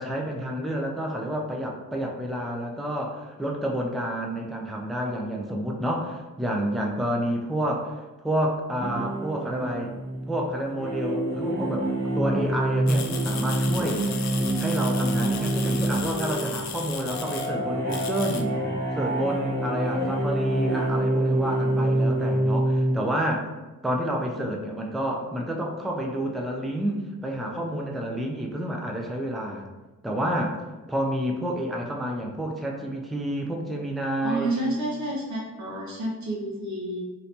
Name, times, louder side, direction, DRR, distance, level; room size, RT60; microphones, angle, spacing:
voice 1, 0.0-9.9 10.3-11.9 12.1-14.0 14.6-18.5 18.9-23.5 23.8-29.7 30.0-30.6 30.9-34.5, equal, ahead, 0 dB, 0.4 m, -29 dB
sound 1, 8.8-22.9, right 1 dB, 30° right, 1.3 m, -26 dB
sound 2, 12.9-17.5 17.9-18.4, left 7 dB, 55° left, 0.5 m, -36 dB
voice 2, 13.8-14.2 24.4-24.5 34.2-37.0, right 1 dB, 55° right, -3 dB, 0.7 m, -30 dB
3.1 x 2.8 x 2.8 m, 1.1 s
cardioid pair, 70°, 34 cm